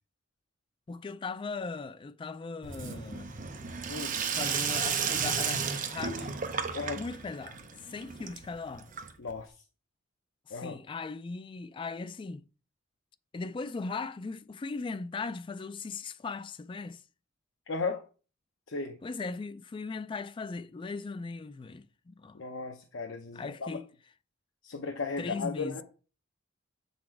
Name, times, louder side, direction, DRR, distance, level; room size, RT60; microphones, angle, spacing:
voice 1, 0.9-3.3 4.3-6.3 7.0-8.9 10.5-12.4 13.3-17.0 19.0-22.4 23.3-23.9 25.2-25.8, left 4 dB, 25° left, 0.3 m, -38 dB
Sink (filling or washing), 2.6-9.4, right 6 dB, 40° right, 0.7 m, -33 dB
voice 2, 3.9-4.2 6.7-7.0 9.2-9.6 10.5-10.8 17.7-18.0 18.7-19.0 22.3-23.8 24.6-25.8, left 4 dB, 70° left, 0.8 m, -35 dB
7.5 x 4.1 x 4.4 m
head